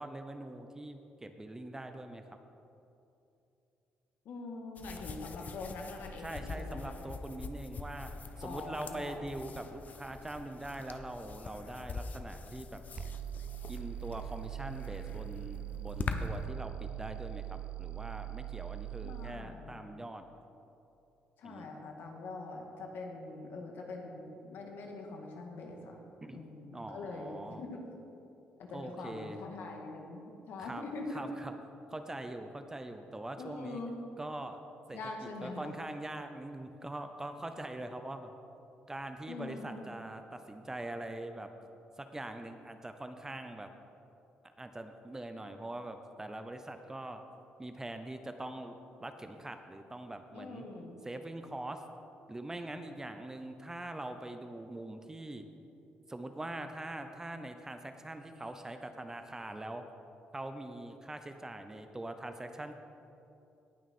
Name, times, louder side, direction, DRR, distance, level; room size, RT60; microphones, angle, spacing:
voice 1, 0.0-2.4 6.2-8.1 8.4-12.8 13.7-20.2 21.4-21.7 26.2-26.4 26.7-27.6 28.7-29.4 30.6-30.8 31.1-31.5 31.9-33.8 34.2-34.6 34.9-35.0 35.4-38.3 38.9-41.5 42.0-43.7 44.4-47.2 47.6-50.6 51.0-51.8 52.3-55.4 56.1-59.8 60.3-62.8, right 1 dB, 15° right, 7 dB, 0.7 m, -43 dB
voice 2, 4.2-7.0 8.4-9.2 19.0-19.8 21.4-26.0 26.3-27.8 28.6-31.3 33.4-34.0 34.9-35.8 39.3-39.8 50.3-51.0, left 3 dB, 75° left, 1 dB, 1.7 m, -43 dB
sound 1, 4.8-16.5, left 4 dB, 45° left, 0.7 m, -44 dB
sound 2, 13.0-19.4, right 13 dB, 35° right, 0.3 m, -42 dB
18.0 x 6.1 x 4.3 m, 2.8 s
cardioid pair, 100°, 4 cm